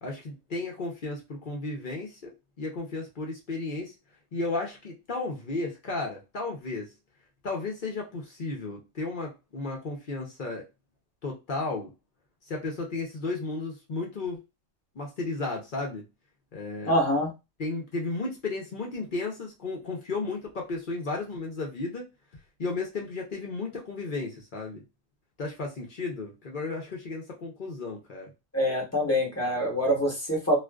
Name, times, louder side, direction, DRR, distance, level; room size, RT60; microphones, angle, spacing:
voice 1, 0.0-2.3 2.6-3.9 4.3-6.9 7.4-10.6 11.2-11.9 12.5-14.4 15.0-16.0 16.5-17.0 17.6-22.1 22.6-24.8 25.4-28.3, left 3 dB, 50° left, 0 dB, 0.7 m, -34 dB
voice 2, 16.8-17.3 28.5-30.5, equal, 15° left, -2 dB, 0.8 m, -25 dB
2.4 x 2.4 x 2.3 m, 0.24 s
omnidirectional pair, 1.4 m